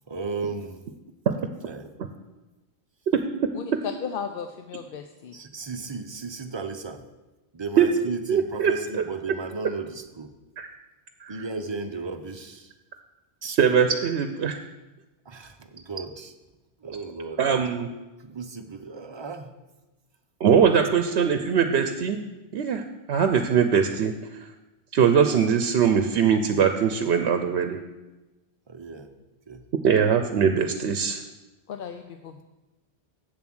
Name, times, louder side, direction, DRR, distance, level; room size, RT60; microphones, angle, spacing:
voice 1, 0.1-0.8 1.6-1.9 5.3-7.0 7.5-10.3 11.3-12.7 13.4-13.6 15.3-16.3 16.8-17.4 18.2-19.5 20.7-20.9 28.7-29.1 29.5-29.6, right 4 dB, 30° right, 6 dB, 0.6 m, -35 dB
voice 2, 3.5-5.4 31.7-32.4, left 7 dB, 65° left, 7 dB, 0.7 m, -35 dB
voice 3, 8.3-8.7 10.6-10.7 11.2-11.4 13.6-14.6 17.4-17.9 20.4-22.2 22.5-24.5 24.9-27.8 29.8-31.2, right 7 dB, 75° right, 7 dB, 0.9 m, -21 dB
7.9 x 7.1 x 6.1 m, 1.1 s
omnidirectional pair, 1.1 m